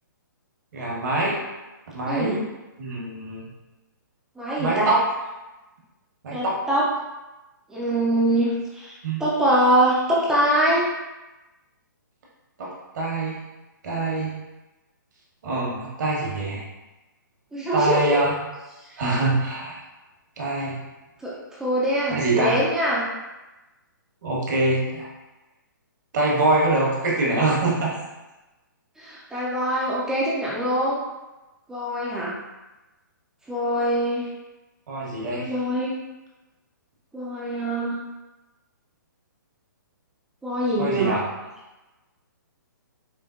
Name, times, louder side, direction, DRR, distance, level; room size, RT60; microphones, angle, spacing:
voice 1, 0.7-1.4 1.9-2.5 2.8-3.5 4.6-5.0 6.2-6.6 9.0-9.2 12.6-13.4 13.8-14.3 15.4-16.6 17.7-18.3 19.0-19.8 20.4-20.8 22.1-22.6 24.2-25.1 26.1-28.0 34.9-35.5 40.8-41.2, right 2 dB, 60° right, -4 dB, 1.1 m, -24 dB
voice 2, 2.1-2.4 4.4-4.9 6.3-6.8 7.7-10.8 17.5-18.2 18.8-19.0 21.2-23.1 29.0-31.0 31.7-32.3 33.5-34.3 35.3-35.9 37.1-38.0 40.4-41.2, right 1 dB, 5° right, -7 dB, 0.4 m, -23 dB
4.3 x 2.1 x 2.4 m, 1.1 s
hypercardioid pair, 140°, 11 cm